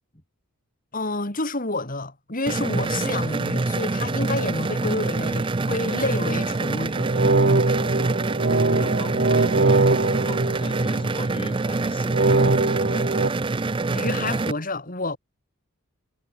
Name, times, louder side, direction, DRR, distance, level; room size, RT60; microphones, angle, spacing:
voice 1, 0.9-7.1 13.9-15.2, left 2 dB, 40° left, 3.9 m, -29 dB
sound 1, 2.5-14.5, right 3 dB, 25° right, 0.4 m, -25 dB
sound 2, 6.9-11.3 12.1-13.3, right 3 dB, 50° right, 1.0 m, -22 dB
voice 2, 8.5-13.1, left 1 dB, 25° left, 4.7 m, -38 dB
head